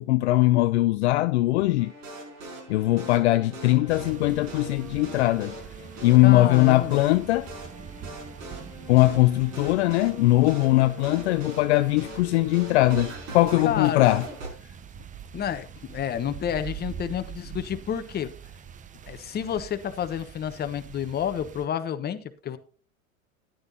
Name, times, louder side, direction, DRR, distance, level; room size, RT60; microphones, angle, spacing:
voice 1, 0.0-1.9 2.7-5.5 6.0-7.5 8.9-14.3, left 17 dB, 55° left, 0.6 m, -21 dB
sound 1, 1.8-14.5, right 2 dB, 60° right, 5.7 m, -41 dB
sound 2, 3.9-21.7, right 8 dB, 20° right, 0.8 m, -44 dB
voice 2, 6.2-7.0 13.6-14.0 15.3-18.3 19.1-22.6, left 9 dB, 25° left, 1.1 m, -30 dB
13.5 x 10.5 x 2.8 m
figure-of-eight pair, 90°, 41 cm